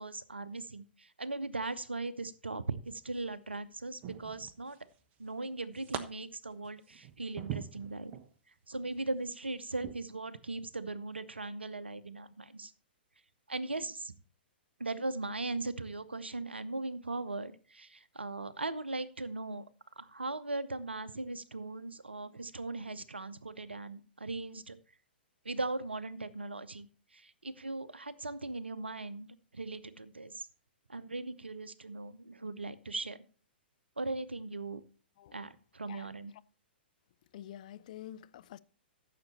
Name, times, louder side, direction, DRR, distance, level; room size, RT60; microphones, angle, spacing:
voice 1, 0.0-4.8 5.2-8.1 8.7-12.7 13.5-14.1 14.8-19.6 20.0-24.8 25.4-26.9 27.1-30.5 30.9-33.2 34.0-34.8 35.3-36.3, right 2 dB, 75° right, 0.8 m, -39 dB
sound 1, 2.8-3.3 4.0-4.9 5.3-6.0 6.5-8.3 8.8-9.0 9.8-9.9, right 9 dB, 30° right, 1.0 m, -43 dB
voice 2, 37.3-38.6, left 12 dB, 45° left, 0.5 m, -47 dB
14.0 x 6.8 x 4.1 m
figure-of-eight pair, 110°, 6 cm